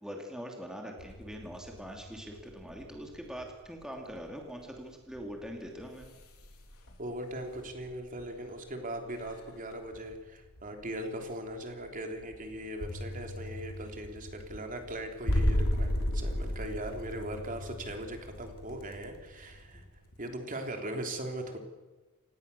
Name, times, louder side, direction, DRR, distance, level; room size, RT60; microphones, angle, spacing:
voice 1, 0.0-6.1, equal, 5° right, 1 dB, 2.8 m, -43 dB
sound 1, 1.0-8.6 8.8-20.2, equal, 85° left, 3.7 m, -36 dB
voice 2, 7.0-19.8 20.2-21.6, right 1 dB, 40° right, 4 dB, 3.3 m, -39 dB
28.5 x 18.0 x 7.0 m, 1.2 s
head